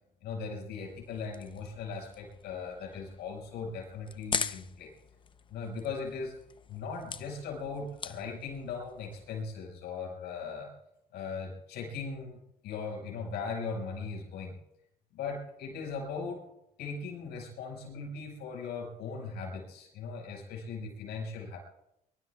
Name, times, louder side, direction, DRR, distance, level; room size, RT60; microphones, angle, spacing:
voice 1, 0.2-4.9 5.5-6.3 6.7-10.7 11.1-14.5 15.1-16.4 16.8-21.6, left 4 dB, 80° left, 0 dB, 5.5 m, -39 dB
sound 1, 0.8-9.4, left 6 dB, 30° left, 0.7 m, -42 dB
23.5 x 22.5 x 2.3 m, 0.82 s
cardioid pair, 110°, 17 cm